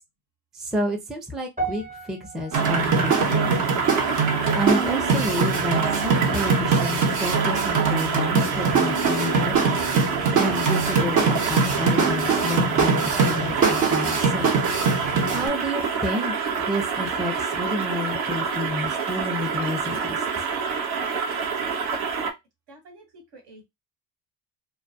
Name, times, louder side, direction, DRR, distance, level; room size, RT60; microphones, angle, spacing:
voice 1, 0.5-3.7 4.5-9.5 10.4-14.5 15.3-16.3 16.7-20.2, left 1 dB, ahead, 0.5 m, -30 dB
sound 1, 1.6-6.0 6.2-6.6 7.3-7.4, right 3 dB, 15° right, 1.0 m, -38 dB
sound 2, 2.5-15.5, right 5 dB, 40° right, 0.9 m, -23 dB
sound 3, 2.6-22.3, right 5 dB, 75° right, 0.8 m, -27 dB
voice 2, 22.7-23.7, right 1 dB, 60° right, 1.2 m, -48 dB
2.2 x 2.2 x 2.6 m
supercardioid pair, 75°, 46 cm